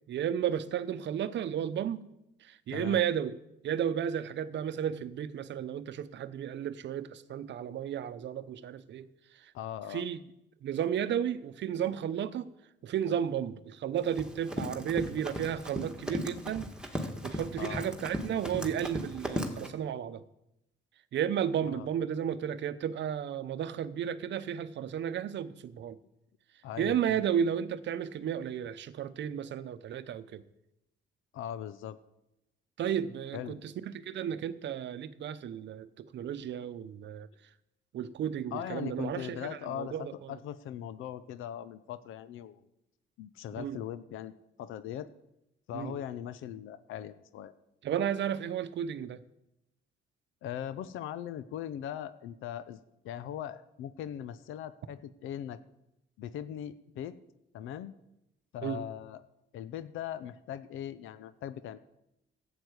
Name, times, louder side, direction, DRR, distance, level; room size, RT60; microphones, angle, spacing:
voice 1, 0.1-2.1 2.4-3.4 3.6-9.1 9.4-9.5 9.9-10.2 10.6-12.5 12.8-16.7 17.0-20.2 21.1-26.0 26.8-30.4 32.8-37.3 37.9-40.1 43.6-43.8 45.7-46.0 47.8-49.2 58.6-58.8, right 9 dB, 65° right, 14 dB, 0.8 m, -33 dB
voice 2, 2.7-3.0 9.5-10.0 17.6-17.9 21.6-21.9 26.6-27.2 31.3-32.0 33.3-33.6 38.5-42.6 43.2-44.3 44.6-45.1 45.7-47.5 50.4-52.8 53.0-55.6 56.2-57.2 57.5-57.9 58.5-59.2 59.5-61.8, left 10 dB, 85° left, 14 dB, 0.6 m, -40 dB
Run, 14.0-19.7, equal, 5° right, 1.8 m, -37 dB
11.5 x 8.0 x 8.0 m, 0.87 s
cardioid pair, 90°, 20 cm